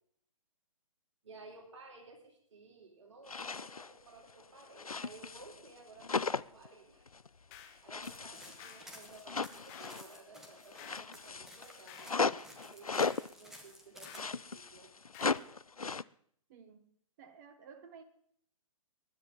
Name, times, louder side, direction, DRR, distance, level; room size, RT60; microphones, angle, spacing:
voice 1, 1.2-7.1 7.8-14.9, right 3 dB, 55° right, 1 dB, 3.5 m, -56 dB
sound 1, 3.3-3.9 4.3-5.7 6.0-6.7 7.1-7.3 7.9-10.2 10.5-13.3 14.0-16.0, left 4 dB, 85° left, 0.4 m, -37 dB
sound 2, 7.5-7.8 8.6-8.9 9.7-10.0 10.8-11.1 11.9-12.2 13.0-13.3 14.1-14.4 15.1-15.5, left 9 dB, 25° left, 1.5 m, -53 dB
sound 3, 8.0-14.2, equal, ahead, 1.6 m, -54 dB
voice 2, 16.5-16.8 17.2-18.0, right 6 dB, 30° right, 9 dB, 1.2 m, -54 dB
21.5 x 10.0 x 3.8 m, 0.63 s
figure-of-eight pair, 125°, 18 cm